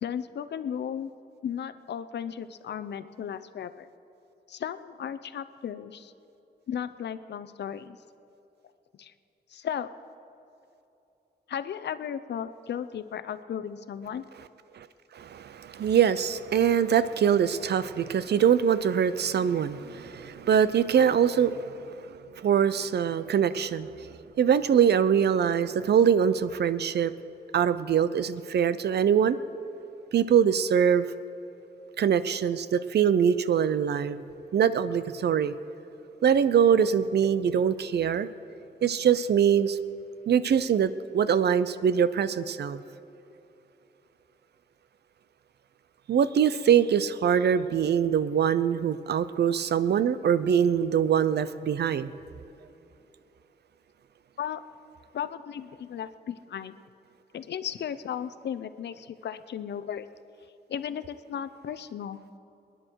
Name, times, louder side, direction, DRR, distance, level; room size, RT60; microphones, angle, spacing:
voice 1, 0.0-1.1 1.4-3.9 4.5-6.1 6.7-8.0 9.0-9.1 9.5-9.9 11.5-14.3 54.4-54.6 55.1-56.8 57.3-60.1 60.7-62.2, left 8 dB, 80° left, 11 dB, 0.7 m, -35 dB
voice 2, 15.1-22.1 22.3-27.1 27.5-29.4 30.1-31.1 32.0-34.2 34.5-35.5 36.2-38.3 38.8-39.8 40.3-42.8 46.1-52.1, right 8 dB, 75° right, 14 dB, 0.6 m, -23 dB
27.5 x 10.0 x 4.6 m, 2.9 s
wide cardioid pair, 140°, 17 cm